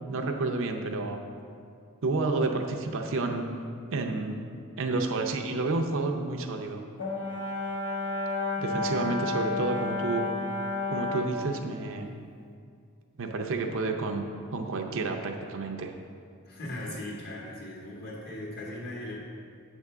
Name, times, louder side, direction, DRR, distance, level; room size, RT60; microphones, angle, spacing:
voice 1, 0.1-1.2 2.0-3.5 3.9-4.4 4.8-6.8 8.6-10.3 10.9-12.1 13.2-15.9, right 3 dB, 60° right, 3 dB, 0.6 m, -30 dB
Brass instrument, 7.0-11.4, left 2 dB, 75° left, 1.2 m, -31 dB
voice 2, 16.5-19.2, left 1 dB, 45° left, -5 dB, 1.8 m, -38 dB
7.9 x 3.6 x 6.6 m, 2.3 s
head